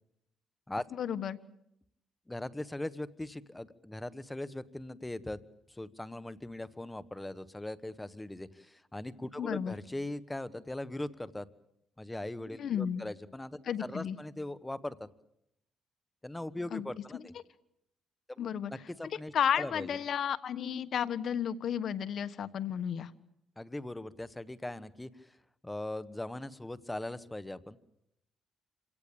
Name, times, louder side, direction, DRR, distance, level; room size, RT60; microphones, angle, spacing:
voice 1, 1.0-1.4 9.4-9.7 12.6-13.0 13.7-14.2 16.7-16.9 17.1-17.2 18.4-18.7 19.3-23.1, left 8 dB, 60° left, 13 dB, 1.4 m, -32 dB
voice 2, 2.3-5.4 5.7-11.5 12.0-15.0 16.2-17.3 18.3-20.0 23.6-25.4 25.6-27.8, left 1 dB, 10° left, 15 dB, 1.3 m, -40 dB
27.0 x 17.5 x 8.8 m, 0.79 s
cardioid pair, 90°, 0 cm